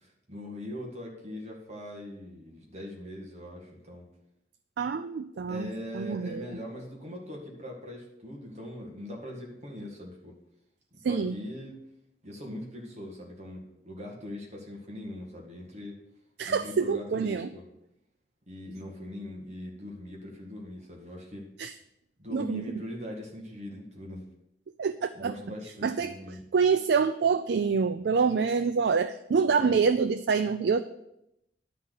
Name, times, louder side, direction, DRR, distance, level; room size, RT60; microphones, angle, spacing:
voice 1, 0.0-4.1 5.5-10.4 10.9-11.8 12.2-16.0 16.4-17.7 18.5-21.5 22.2-24.2 25.1-26.4 29.5-29.8, left 1 dB, 40° right, -1 dB, 1.8 m, -41 dB
voice 2, 4.8-6.5 11.0-11.3 16.4-17.5 21.6-21.7 22.3-22.6 24.8-25.3 25.8-30.8, right 5 dB, 65° right, 10 dB, 0.4 m, -26 dB
11.5 x 4.0 x 6.5 m, 0.83 s
head